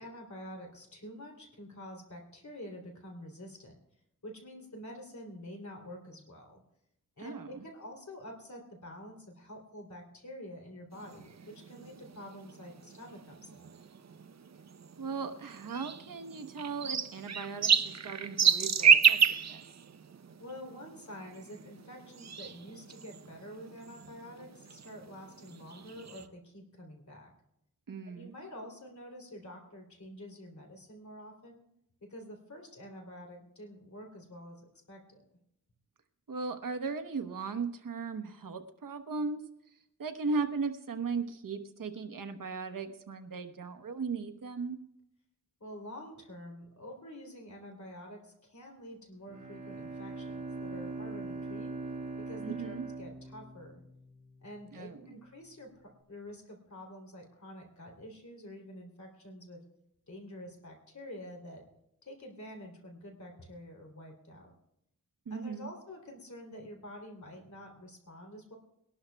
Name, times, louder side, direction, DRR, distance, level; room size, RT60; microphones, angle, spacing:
voice 1, 0.0-3.8 4.2-6.6 7.2-13.7 20.4-27.3 28.0-31.6 32.1-35.3 45.6-51.7 52.2-53.8 54.4-59.6 60.1-61.6 62.0-64.5 65.3-68.6, equal, 60° left, 1 dB, 3.1 m, -48 dB
voice 2, 7.2-7.6 15.0-19.6 27.9-28.3 36.3-39.4 40.0-44.8 52.4-52.8 54.7-55.2 65.3-65.7, right 4 dB, 80° right, 8 dB, 1.0 m, -37 dB
sound 1, 10.9-26.2, right 7 dB, 55° right, 0.7 m, -31 dB
Bowed string instrument, 49.3-54.5, right 3 dB, 20° right, 5.8 m, -41 dB
22.5 x 12.0 x 2.3 m, 0.80 s
wide cardioid pair, 70°, 33 cm